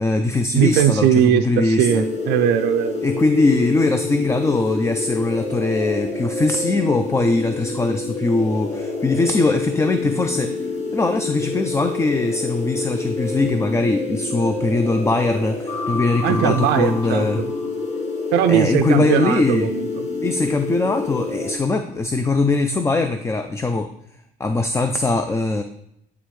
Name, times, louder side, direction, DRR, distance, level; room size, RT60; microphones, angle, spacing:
voice 1, 0.0-2.0 3.0-10.5 10.9-17.4 18.5-19.7 20.2-23.9 24.4-25.6, left 3 dB, 15° left, 7 dB, 0.4 m, -21 dB
voice 2, 0.5-3.0 16.2-17.5 18.3-20.1, right 10 dB, 85° right, 7 dB, 0.4 m, -19 dB
sound 1, 1.9-21.6, left 3 dB, 40° left, 1.3 m, -27 dB
9.8 x 3.4 x 3.1 m, 0.77 s
cardioid pair, 110°, 17 cm